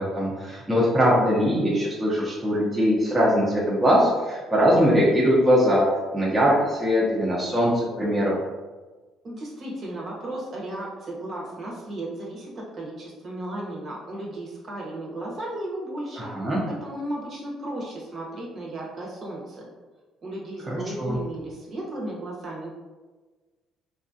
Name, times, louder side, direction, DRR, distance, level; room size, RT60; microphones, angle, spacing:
voice 1, 0.0-5.8 6.1-8.4 16.2-16.6 20.7-21.2, equal, 10° right, -6 dB, 0.7 m, -21 dB
voice 2, 9.2-16.3 16.6-19.7 20.2-22.7, right 1 dB, 40° right, -3 dB, 0.9 m, -35 dB
4.0 x 2.4 x 2.6 m, 1.3 s
cardioid pair, 130°, 0 cm